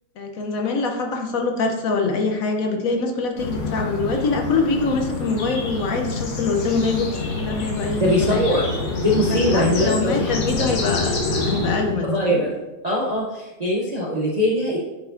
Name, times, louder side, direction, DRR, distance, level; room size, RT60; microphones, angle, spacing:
voice 1, 0.2-8.6 9.3-12.5, left 3 dB, 55° left, 3 dB, 1.1 m, -24 dB
sound 1, 3.4-12.0, left 3 dB, 80° left, 1.9 m, -26 dB
voice 2, 8.0-8.7 9.0-10.3 12.0-12.6 12.8-14.8, equal, 50° right, -4 dB, 0.4 m, -22 dB
sound 2, 9.9-12.3 13.1-13.2, left 1 dB, 35° right, 1.9 m, -40 dB
9.4 x 4.6 x 2.6 m, 1.1 s
omnidirectional pair, 2.0 m